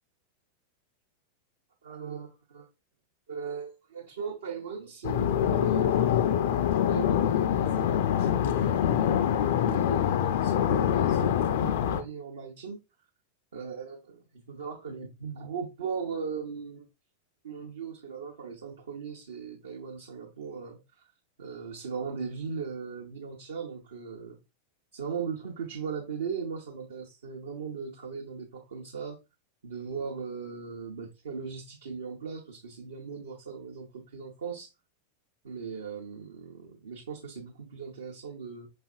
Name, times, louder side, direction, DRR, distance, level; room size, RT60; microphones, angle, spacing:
voice 1, 1.8-2.7 3.3-12.8 13.5-16.9 17.4-20.8 21.4-24.4 24.9-29.2 29.6-34.7 35.4-38.7, right 6 dB, 65° right, 0.8 m, -38 dB
sound 1, 5.0-12.0, left 10 dB, 55° left, 0.4 m, -25 dB
5.2 x 3.3 x 2.3 m
figure-of-eight pair, 90°, 0 cm